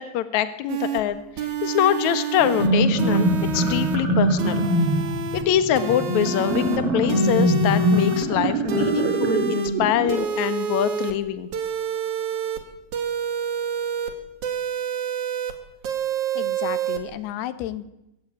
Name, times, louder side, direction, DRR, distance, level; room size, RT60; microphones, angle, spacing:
voice 1, 0.0-3.3 3.5-4.6 5.3-11.5, left 11 dB, 60° left, 11 dB, 2.3 m, -24 dB
sound 1, 0.7-1.0 1.4-2.7 3.0-4.0 4.4-5.4 5.7-6.8 7.1-8.2 8.7-9.7 10.1-11.1 11.5-12.6 12.9-14.1 14.4-15.5 15.8-17.0, right 5 dB, 55° right, 3.2 m, -28 dB
sound 2, 2.4-10.3, right 1 dB, 40° right, 3.7 m, -23 dB
voice 2, 16.4-17.9, left 12 dB, 90° left, 13 dB, 3.2 m, -32 dB
23.5 x 15.0 x 9.7 m, 0.90 s
omnidirectional pair, 4.5 m